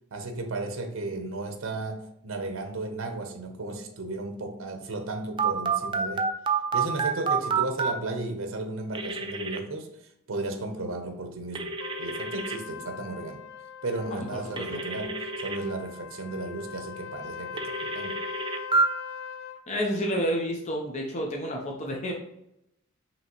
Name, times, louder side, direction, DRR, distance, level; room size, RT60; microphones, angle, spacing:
voice 1, 0.1-6.3 6.7-13.4 13.8-18.2, right 2 dB, 65° right, 0.7 m, -34 dB
Telephone, 5.4-7.9 8.9-9.6 11.6-12.6 14.6-15.6 17.6-18.9, right 5 dB, 25° right, 0.3 m, -28 dB
Trumpet, 11.8-19.6, left 7 dB, 75° left, 0.3 m, -41 dB
voice 2, 19.7-22.1, equal, 35° left, 0.6 m, -29 dB
5.4 x 2.9 x 2.9 m
head